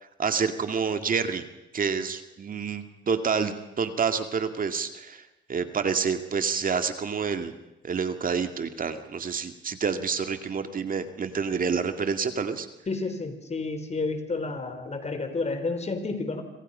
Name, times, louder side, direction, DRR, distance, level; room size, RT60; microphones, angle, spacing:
voice 1, 0.2-1.4 1.7-5.2 5.5-7.5 7.8-12.7, right 6 dB, 45° right, 8 dB, 2.1 m, -28 dB
voice 2, 12.9-16.4, left 3 dB, 35° left, 8 dB, 4.0 m, -30 dB
26.5 x 25.5 x 5.6 m, 0.93 s
cardioid pair, 90°, 20 cm